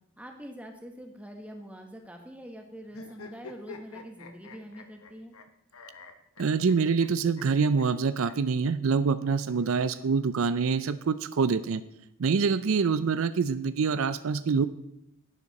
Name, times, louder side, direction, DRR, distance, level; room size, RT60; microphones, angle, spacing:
voice 1, 0.2-5.3, equal, 5° right, 3 dB, 1.2 m, -44 dB
sound 1, 2.9-5.4 5.7-7.1 7.4-7.5 7.8-7.9 8.2-8.3 9.4-10.4, left 4 dB, 85° left, 1.0 m, -47 dB
voice 2, 6.4-11.8 12.2-14.6, right 5 dB, 75° right, 14 dB, 0.4 m, -25 dB
11.0 x 9.9 x 4.1 m, 0.78 s
head